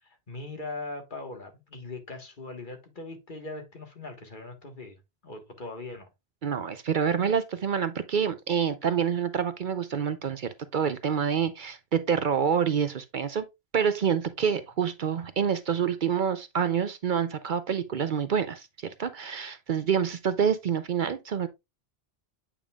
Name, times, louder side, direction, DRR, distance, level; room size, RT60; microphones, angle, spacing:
voice 1, 0.0-6.1, left 2 dB, 50° left, 1.6 m, -40 dB
voice 2, 6.4-13.4 13.7-21.5, right 7 dB, 55° right, 0.7 m, -27 dB
8.5 x 5.3 x 2.3 m
omnidirectional pair, 1.0 m